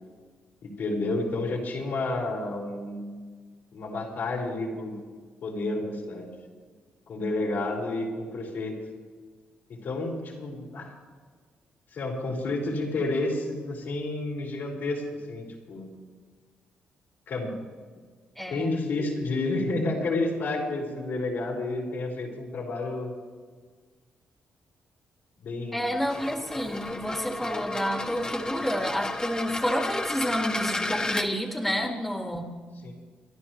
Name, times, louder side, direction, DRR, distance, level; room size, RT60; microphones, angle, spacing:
voice 1, 0.6-3.2 3.7-5.0 5.4-6.3 7.1-8.7 9.8-10.9 11.9-15.0 15.3-15.9 17.3-17.5 18.5-23.1 25.4-25.9 32.8-32.9, left 2 dB, 70° left, -3 dB, 4.9 m, -30 dB
voice 2, 18.4-18.8 25.7-32.5, equal, 5° left, 1 dB, 2.0 m, -29 dB
sound 1, 26.0-31.3, left 2 dB, 20° left, 1.3 m, -32 dB
29.5 x 11.5 x 3.3 m, 1.5 s
cardioid pair, 65°, 4 cm